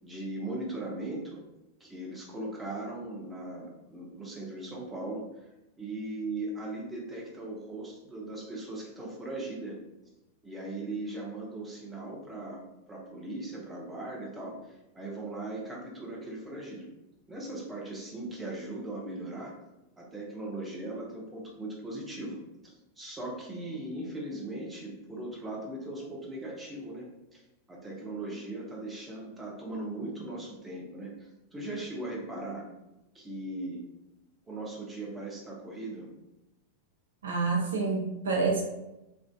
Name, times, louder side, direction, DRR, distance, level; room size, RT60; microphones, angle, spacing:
voice 1, 0.0-1.4 1.8-5.5 5.8-9.8 10.4-12.6 12.9-16.9 17.3-19.6 20.0-27.0 27.3-27.4 27.7-32.6 33.1-33.8 34.5-36.1, right 2 dB, 15° right, -3 dB, 0.7 m, -39 dB
voice 2, 37.2-38.6, right 4 dB, 65° right, -1 dB, 0.5 m, -28 dB
3.4 x 2.4 x 2.3 m, 0.96 s
figure-of-eight pair, 90°, 0 cm